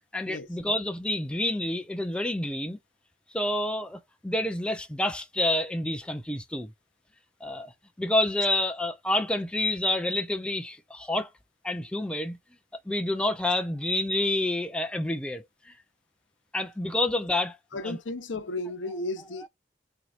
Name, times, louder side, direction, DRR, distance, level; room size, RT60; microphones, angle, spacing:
voice 1, 0.1-2.8 3.3-6.7 7.4-7.7 8.0-11.3 11.6-12.4 12.9-15.7 16.5-17.6 17.8-18.0, left 1 dB, 5° left, 0.4 m, -28 dB
voice 2, 17.7-19.5, left 2 dB, 90° left, 0.7 m, -34 dB
4.5 x 2.8 x 2.4 m
head